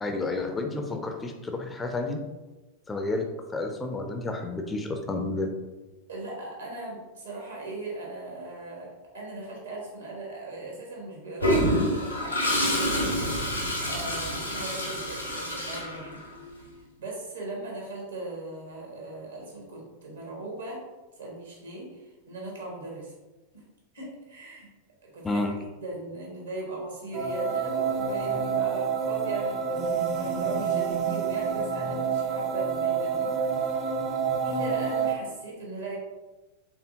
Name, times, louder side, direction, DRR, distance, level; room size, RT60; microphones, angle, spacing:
voice 1, 0.0-2.2 2.9-3.3 3.5-5.5 25.2-25.5, left 2 dB, 15° left, 5 dB, 0.4 m, -30 dB
voice 2, 6.1-16.2 16.6-16.7 17.0-20.8 21.2-23.1 23.5-23.6 23.9-24.7 25.0-25.4 25.8-33.3 34.4-36.0, right 2 dB, 70° right, -2 dB, 1.4 m, -39 dB
Toilet flush, 11.4-16.5, equal, 90° left, 0.9 m, -27 dB
sound 1, 27.1-35.1, right 6 dB, 35° right, 0.6 m, -28 dB
4.3 x 3.4 x 2.7 m, 1.2 s
figure-of-eight pair, 90°, 0 cm